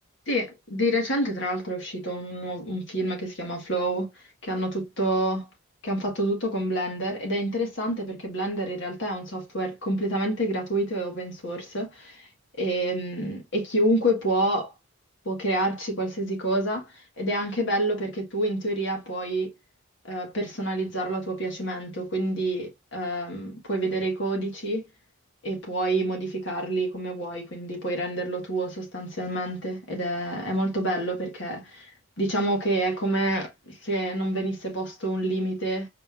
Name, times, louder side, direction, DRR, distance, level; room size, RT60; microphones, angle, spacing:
voice 1, 0.3-5.5 5.8-12.3 12.6-14.7 15.3-19.5 20.0-24.9 25.4-35.9, right 1 dB, 55° left, 1.6 m, -28 dB
5.1 x 3.3 x 2.4 m
head